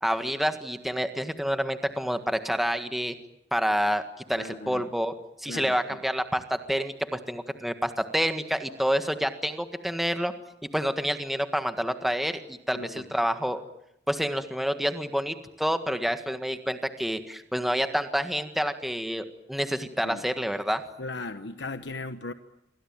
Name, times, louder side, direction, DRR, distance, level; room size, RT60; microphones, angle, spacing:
voice 1, 0.0-3.2 3.5-10.3 10.7-13.6 14.1-20.8, equal, ahead, 8 dB, 1.6 m, -28 dB
voice 2, 4.3-4.9 5.4-5.7 12.7-13.0 20.0-20.3 21.0-22.3, left 2 dB, 85° left, 9 dB, 1.2 m, -37 dB
28.0 x 24.0 x 8.9 m, 0.82 s
head